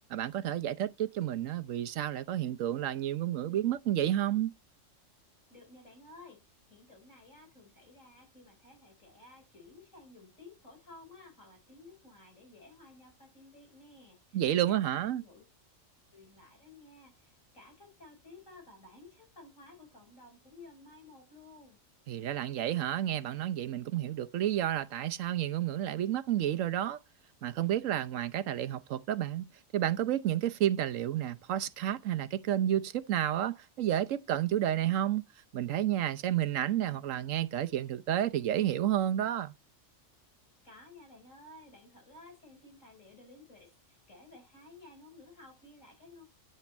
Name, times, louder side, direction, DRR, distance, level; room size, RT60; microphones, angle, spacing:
voice 1, 0.1-4.5 14.3-15.2 22.1-27.0 27.4-29.5 29.7-35.2 35.5-39.5, right 11 dB, 80° right, 1.1 m, -30 dB
voice 2, 5.5-6.4 6.7-15.4 16.1-21.8 40.6-46.2, left 2 dB, 75° left, 5.6 m, -55 dB
9.0 x 8.2 x 4.2 m
omnidirectional pair, 1.3 m